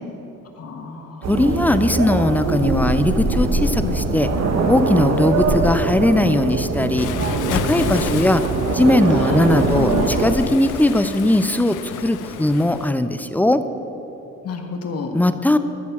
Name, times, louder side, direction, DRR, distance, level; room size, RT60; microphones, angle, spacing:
voice 1, 0.6-1.2 3.8-3.9 9.2-10.0 14.4-15.1, left 4 dB, 55° left, 4 dB, 1.4 m, -29 dB
sound 1, 1.2-10.3, right 3 dB, 60° right, 1.4 m, -22 dB
voice 2, 1.3-4.3 4.7-7.1 7.5-8.4 8.7-13.6 15.1-15.6, left 1 dB, 5° left, 11 dB, 0.5 m, -19 dB
Waves surf, 7.0-12.9, left 9 dB, 85° left, 0.7 m, -31 dB
13.0 x 6.8 x 7.2 m, 3.0 s
cardioid pair, 90°, 30 cm